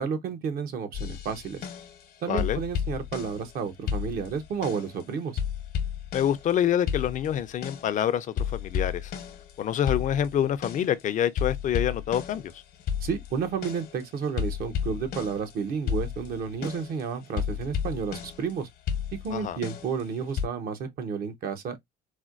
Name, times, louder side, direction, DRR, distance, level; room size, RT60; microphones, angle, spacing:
voice 1, 0.0-1.7 2.2-5.4 13.0-18.7 19.2-21.8, right 6 dB, 60° right, 0.8 m, -31 dB
sound 1, 0.9-2.1 2.4-3.6 3.9-5.0 5.4-6.6 6.9-8.0 8.4-11.0 11.4-15.5 15.9-18.5 18.9-20.5, left 8 dB, 65° left, 0.9 m, -32 dB
voice 2, 2.3-2.6 6.1-9.1 9.6-12.6 19.3-19.6, left 10 dB, 50° left, 0.5 m, -26 dB
4.2 x 2.2 x 2.4 m
cardioid pair, 110°, 17 cm